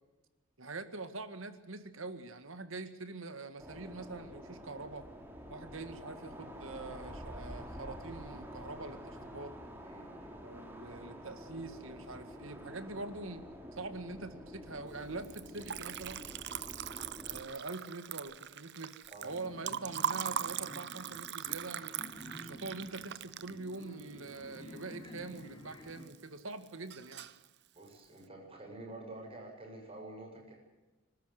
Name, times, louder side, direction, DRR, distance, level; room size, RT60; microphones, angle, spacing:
voice 1, 0.6-5.1 5.5-9.5 10.4-13.4 13.8-16.3 17.3-22.0 22.4-27.3, right 3 dB, 75° right, 10 dB, 2.0 m, -44 dB
sound 1, 3.6-17.4, equal, 10° right, 4.1 m, -48 dB
voice 2, 9.8-10.4 19.1-19.3 27.7-30.5, right 2 dB, 30° right, 0 dB, 7.6 m, -48 dB
Liquid, 15.2-25.4 25.7-26.4 26.7-27.4, right 9 dB, 55° right, 0.7 m, -40 dB
sound 2, 19.3-26.0, equal, 25° left, 3.5 m, -51 dB
26.0 x 13.0 x 9.4 m, 1.1 s
head